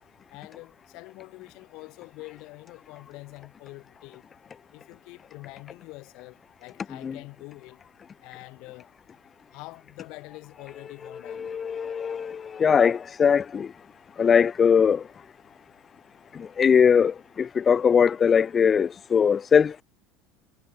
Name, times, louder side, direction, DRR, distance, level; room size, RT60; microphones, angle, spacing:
voice 1, 0.3-4.2 4.7-7.8 8.2-8.9 9.5-11.6, left 24 dB, 65° left, 2.9 m, -45 dB
voice 2, 11.3-13.7 14.2-15.1 16.3-19.8, left 7 dB, 30° left, 0.7 m, -21 dB
supercardioid pair, 110°, 0 cm